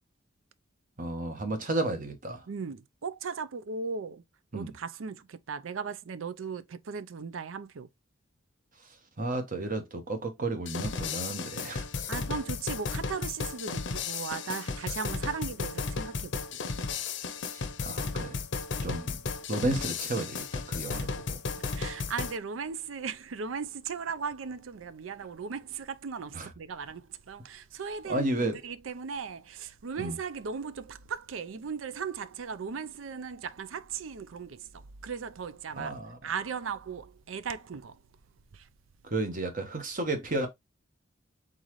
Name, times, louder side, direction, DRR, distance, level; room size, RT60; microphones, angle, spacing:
voice 1, 1.0-2.4 4.5-4.7 9.2-11.8 17.5-18.4 18.8-19.2 19.5-21.4 26.3-26.5 28.0-28.6 30.0-30.2 35.7-36.3 39.0-40.5, right 2 dB, 45° right, 1.2 m, -32 dB
voice 2, 2.5-4.2 4.5-7.9 12.1-16.3 21.7-34.6 35.0-37.9, right 5 dB, 85° right, 0.5 m, -37 dB
sound 1, 10.7-22.4, left 4 dB, 65° left, 0.6 m, -34 dB
4.0 x 3.8 x 3.1 m
head